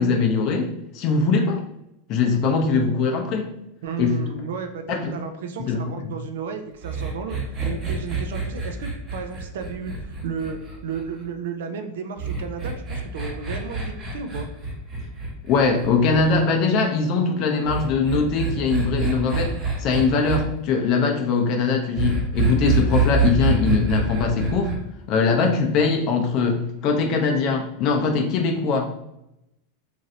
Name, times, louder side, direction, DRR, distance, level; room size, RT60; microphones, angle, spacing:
voice 1, 0.0-1.6 2.1-3.5 4.0-4.2 4.9-5.1 5.7-5.8 15.5-19.5 19.8-24.7 25.1-29.0, left 4 dB, 50° left, 2 dB, 0.5 m, -21 dB
voice 2, 3.8-7.4 7.7-14.5, right 6 dB, 75° right, 6 dB, 0.4 m, -33 dB
sound 1, 6.8-11.2 12.2-16.3 17.6-20.4 22.0-24.8, right 3 dB, 30° right, 1.0 m, -26 dB
3.1 x 2.5 x 2.6 m, 0.84 s
hypercardioid pair, 115°, 0 cm